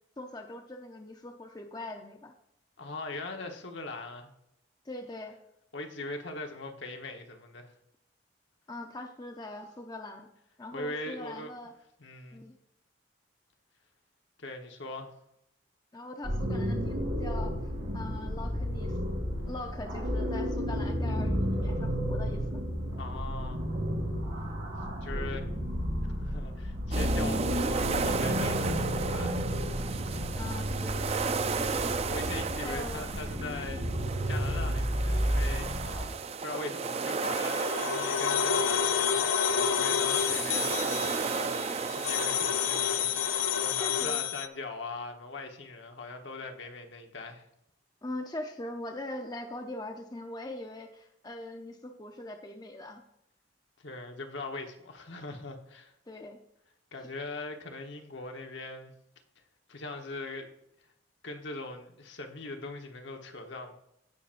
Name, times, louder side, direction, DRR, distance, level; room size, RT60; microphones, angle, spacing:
voice 1, 0.2-2.3 4.8-5.4 8.7-10.3 10.6-11.8 12.3-12.6 15.9-17.6 17.9-19.0 19.5-22.6 30.4-31.1 32.6-33.1 43.8-44.2 48.0-53.0 56.1-56.4, left 1 dB, 20° left, 3 dB, 0.6 m, -41 dB
voice 2, 2.8-4.3 5.7-7.7 10.7-11.5 12.0-12.4 14.4-15.1 23.0-23.6 25.0-25.5 26.2-29.4 29.8-30.1 31.5-33.8 34.3-36.1 36.4-47.4 53.8-55.9 56.9-58.9 59.7-60.5 61.2-63.8, left 3 dB, 65° left, 4 dB, 1.1 m, -41 dB
sound 1, 16.2-36.0, equal, 80° right, 3.2 m, -32 dB
sound 2, 26.9-43.8, right 5 dB, 30° right, 0.3 m, -34 dB
sound 3, 37.0-44.5, left 8 dB, 85° left, 0.6 m, -29 dB
16.0 x 5.9 x 2.5 m, 0.79 s
head